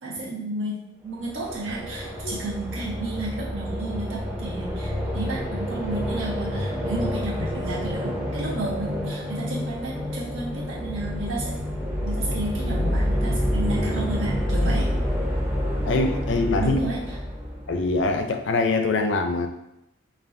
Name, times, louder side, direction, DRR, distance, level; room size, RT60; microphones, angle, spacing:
voice 1, 0.0-11.6 12.0-14.9 16.6-17.0, right 2 dB, 90° right, -6 dB, 1.3 m, -32 dB
sound 1, 1.1-18.1, equal, 10° right, 0.4 m, -28 dB
voice 2, 15.9-16.8 17.7-19.5, left 3 dB, 65° left, 5 dB, 0.4 m, -23 dB
5.5 x 2.3 x 2.6 m, 0.86 s
head